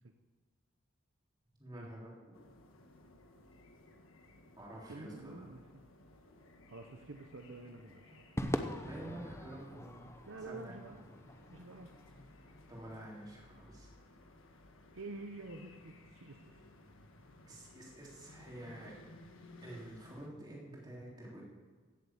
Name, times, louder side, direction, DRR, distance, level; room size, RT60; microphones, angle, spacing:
voice 1, 1.6-2.3 4.5-5.6 8.8-10.1 10.4-10.8 12.7-13.9 17.4-19.0 19.6-21.6, right 1 dB, 20° right, -4 dB, 3.6 m, -49 dB
sound 1, 2.3-20.3, left 1 dB, 70° left, 1.5 m, -59 dB
voice 2, 4.9-5.8 6.7-8.2 10.2-11.0 11.5-11.9 14.9-16.6, right 2 dB, 65° right, 5 dB, 0.8 m, -48 dB
Crowd / Fireworks, 8.4-12.9, left 1 dB, 15° left, 0.7 m, -42 dB
16.0 x 7.8 x 7.2 m, 1.4 s
head